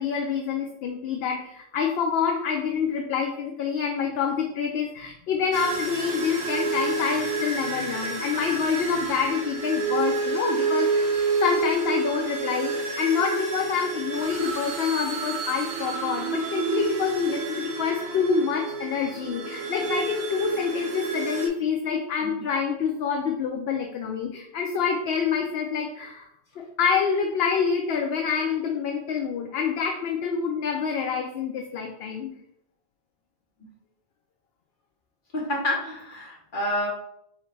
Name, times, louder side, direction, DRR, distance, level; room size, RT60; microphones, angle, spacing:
voice 1, 0.0-26.3 26.6-32.3, left 6 dB, 65° left, 3 dB, 0.8 m, -27 dB
sound 1, 5.5-21.5, right 4 dB, 85° right, 1.2 m, -29 dB
voice 2, 35.3-36.9, left 1 dB, 50° left, -3 dB, 1.4 m, -29 dB
4.1 x 3.9 x 3.2 m, 0.76 s
omnidirectional pair, 1.1 m